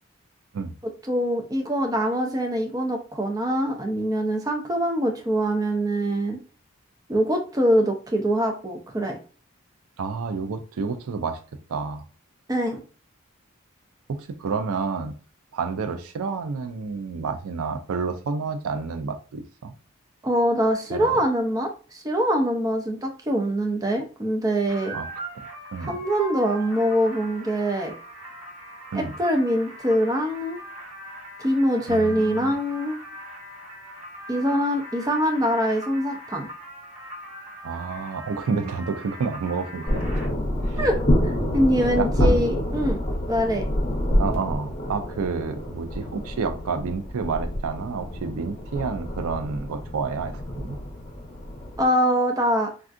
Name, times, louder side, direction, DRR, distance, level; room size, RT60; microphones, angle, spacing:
voice 1, 1.1-6.4 7.1-9.2 12.5-12.8 20.2-24.9 25.8-27.9 28.9-30.6 31.4-33.0 34.3-36.5 40.8-41.0 41.2-43.0 43.3-43.7 51.8-52.7, equal, 15° right, 3 dB, 0.4 m, -23 dB
voice 2, 10.0-11.4 11.7-12.0 14.1-15.1 15.5-19.7 20.9-21.1 24.9-25.1 25.3-25.5 25.7-26.0 28.9-29.1 31.9-32.5 37.6-40.0 40.6-40.9 41.9-42.4 44.2-50.8, right 5 dB, 85° right, 8 dB, 0.4 m, -29 dB
sound 1, 24.7-40.3, equal, 35° right, 1.3 m, -41 dB
sound 2, 39.9-51.9, left 1 dB, 30° left, 0.7 m, -27 dB
3.5 x 2.3 x 2.4 m, 0.38 s
head